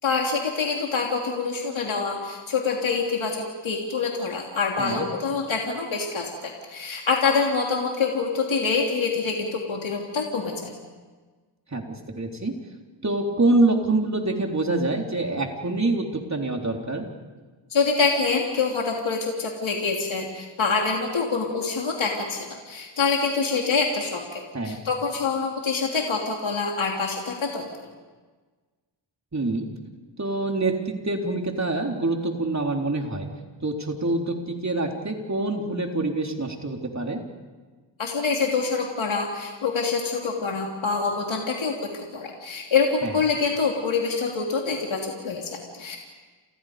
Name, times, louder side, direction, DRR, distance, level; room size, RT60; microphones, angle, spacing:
voice 1, 0.0-10.7 17.7-27.7 38.0-46.0, left 4 dB, 80° left, 0 dB, 3.2 m, -26 dB
voice 2, 4.8-5.1 11.7-12.5 13.0-17.1 24.5-24.8 29.3-29.7 30.2-33.3 33.6-37.2 43.0-43.2, right 2 dB, 35° right, 2 dB, 3.9 m, -25 dB
30.0 x 29.0 x 5.2 m, 1.4 s
wide cardioid pair, 85°, 46 cm